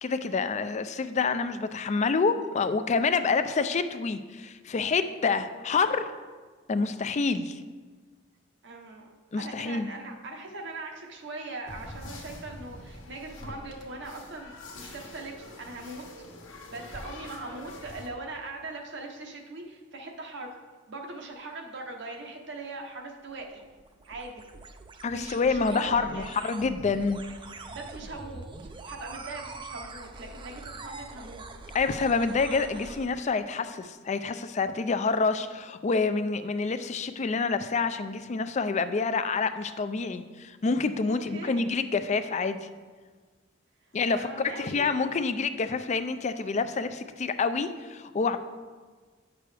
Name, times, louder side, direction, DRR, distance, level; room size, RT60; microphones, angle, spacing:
voice 1, 0.0-6.1 6.7-7.6 9.3-9.9 25.0-27.2 31.7-42.7 43.9-44.3 44.5-48.4, left 4 dB, 35° left, 11 dB, 0.4 m, -27 dB
voice 2, 8.6-16.1 16.7-20.6 20.9-23.6 24.1-24.5 25.1-26.4 27.7-31.5 41.1-41.7 44.1-45.2, right 2 dB, 65° right, 1 dB, 0.9 m, -41 dB
sound 1, 11.7-18.1, left 1 dB, 70° left, 1.2 m, -44 dB
sound 2, 23.2-33.1, right 3 dB, 25° right, 0.4 m, -44 dB
9.0 x 6.1 x 3.3 m, 1.4 s
head